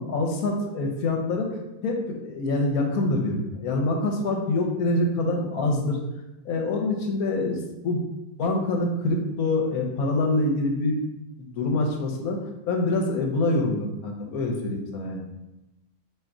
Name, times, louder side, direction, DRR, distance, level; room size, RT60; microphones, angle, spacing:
voice 1, 0.0-6.0 6.4-8.0 8.4-11.0 11.4-12.4 12.7-15.2, left 2 dB, 70° left, 1 dB, 1.2 m, -25 dB
3.8 x 2.8 x 4.6 m, 0.95 s
omnidirectional pair, 1.7 m